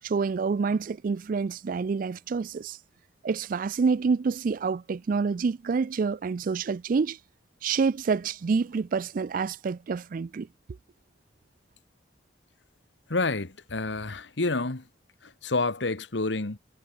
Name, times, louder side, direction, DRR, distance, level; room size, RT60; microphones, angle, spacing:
voice 1, 0.0-2.8 3.2-7.2 7.6-10.5, right 5 dB, 50° right, 0.4 m, -27 dB
voice 2, 13.1-14.8 15.2-16.6, left 3 dB, 80° left, 1.5 m, -29 dB
head